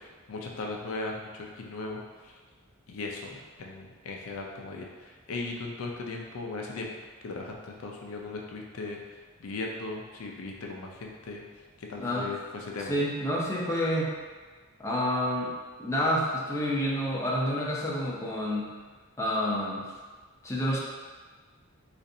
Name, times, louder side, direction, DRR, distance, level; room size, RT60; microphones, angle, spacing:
voice 1, 0.0-2.4 2.9-3.3 3.6-6.9 7.2-12.9, left 3 dB, 70° left, 0 dB, 0.4 m, -38 dB
voice 2, 12.9-14.1 14.8-15.5 15.8-18.7 19.2-19.9 20.4-20.8, equal, 15° left, -5 dB, 0.5 m, -28 dB
4.0 x 2.5 x 2.6 m, 1.4 s
head